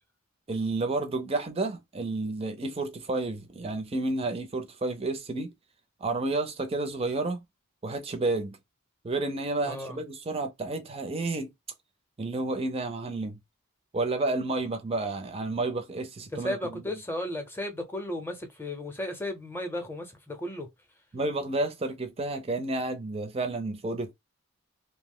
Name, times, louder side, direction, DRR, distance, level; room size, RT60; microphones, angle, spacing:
voice 1, 0.5-5.5 6.0-7.4 7.8-8.6 9.0-11.5 12.2-13.4 13.9-16.8 21.1-24.1, right 2 dB, 25° right, 0.4 m, -31 dB
voice 2, 9.7-10.0 16.3-20.7, left 1 dB, 10° left, 0.6 m, -34 dB
2.7 x 2.0 x 3.5 m
head